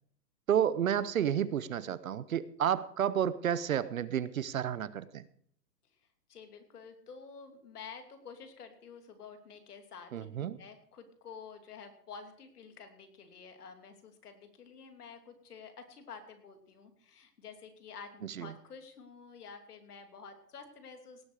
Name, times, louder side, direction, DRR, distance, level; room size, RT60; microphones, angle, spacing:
voice 1, 0.5-5.2 10.1-10.6 18.4-18.5, right 9 dB, 55° right, 17 dB, 0.8 m, -31 dB
voice 2, 6.3-10.1 10.6-21.3, left 5 dB, 65° left, 7 dB, 3.0 m, -50 dB
18.0 x 8.5 x 4.8 m, 0.63 s
hypercardioid pair, 175°, 50 cm